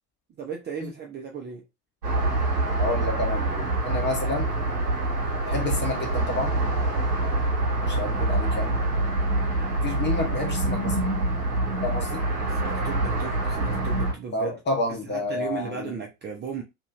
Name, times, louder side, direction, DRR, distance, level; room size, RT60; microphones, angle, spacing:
voice 1, 0.4-1.6 12.5-14.6 15.0-16.6, right 6 dB, 20° right, 0.6 m, -35 dB
sound 1, 2.0-14.1, right 2 dB, 85° right, 1.0 m, -25 dB
voice 2, 2.8-4.5 5.5-6.5 7.9-8.8 9.8-11.0 11.8-12.2 14.3-15.9, left 2 dB, 20° left, 0.9 m, -30 dB
3.0 x 2.7 x 2.4 m
figure-of-eight pair, 70°, 47 cm